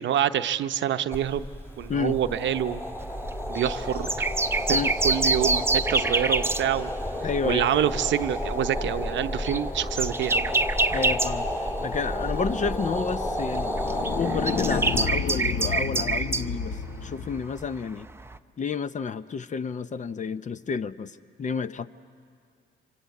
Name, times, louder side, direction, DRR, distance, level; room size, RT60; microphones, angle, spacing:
voice 1, 0.0-1.5 1.8-2.8 3.5-4.3 4.7-6.9 7.4-10.6, right 10 dB, 70° right, 10 dB, 0.8 m, -27 dB
sound 1, 1.1-15.1, left 1 dB, 10° left, 2.2 m, -31 dB
sound 2, 3.0-7.3 7.6-7.9 8.4-12.7 13.0-18.4, right 3 dB, 10° right, 0.6 m, -28 dB
voice 2, 7.2-7.7 10.9-18.1 18.6-21.9, left 5 dB, 40° left, 13 dB, 0.7 m, -30 dB
sound 3, 11.9-17.4, left 6 dB, 65° left, 1.1 m, -32 dB
26.0 x 25.0 x 8.4 m, 2.3 s
cardioid pair, 90°, 20 cm